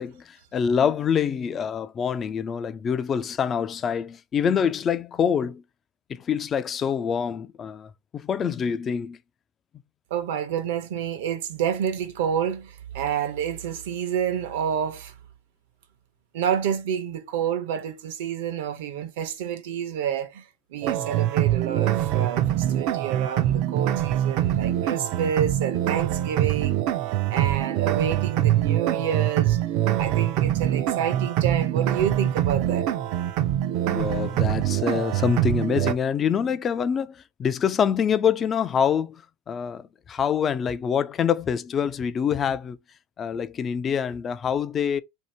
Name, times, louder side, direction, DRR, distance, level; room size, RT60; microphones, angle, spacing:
voice 1, 0.0-5.6 6.1-9.2 33.9-39.1 39.5-42.8 43.2-45.0, left 7 dB, 25° left, 0.3 m, -25 dB
voice 2, 10.1-15.1 16.3-26.9 27.3-29.6 30.0-32.9, right 8 dB, 80° right, 0.8 m, -29 dB
sound 1, 20.8-35.9, right 12 dB, 50° right, 0.4 m, -24 dB
2.8 x 2.8 x 4.3 m
supercardioid pair, 155°, 0 cm